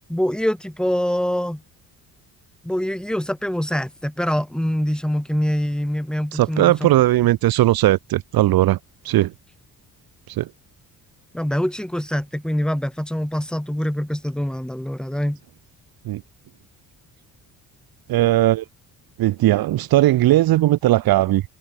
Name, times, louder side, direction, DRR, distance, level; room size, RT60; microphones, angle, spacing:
voice 1, 0.1-1.6 2.6-6.9 11.3-15.4, equal, ahead, 4.3 m, -24 dB
voice 2, 6.3-8.8 9.0-9.3 10.3-10.5 16.0-16.2 18.1-18.6 19.2-21.4, right 15 dB, 75° right, 1.3 m, -18 dB
cardioid pair, 150°, 36 cm